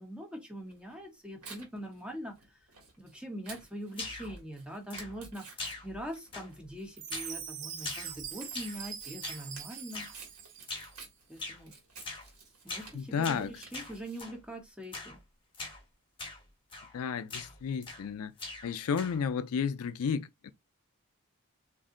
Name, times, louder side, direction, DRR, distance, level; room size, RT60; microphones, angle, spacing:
voice 1, 0.0-2.6 3.0-10.1 11.3-11.7 12.6-15.2, equal, 5° right, 0.8 m, -43 dB
Tearing, 0.7-14.2, right 4 dB, 85° right, 1.3 m, -53 dB
sound 1, 3.9-4.4 4.9-5.3 5.6-6.1 6.3-6.7 7.1-7.4 7.8-8.8 9.2-9.5 9.9-10.2 10.7-11.0 11.4-11.6 12.0-12.3 12.7-12.9 13.2-14.4 14.9-15.2 15.5-15.8 16.2-16.4 16.7-17.0 17.3-18.1 18.4-19.3, left 3 dB, 25° left, 1.0 m, -42 dB
Chime, 7.0-11.0, right 8 dB, 55° right, 0.6 m, -43 dB
voice 2, 12.9-13.5 16.9-18.3 18.6-20.5, left 6 dB, 75° left, 0.4 m, -32 dB
2.6 x 2.1 x 3.7 m
head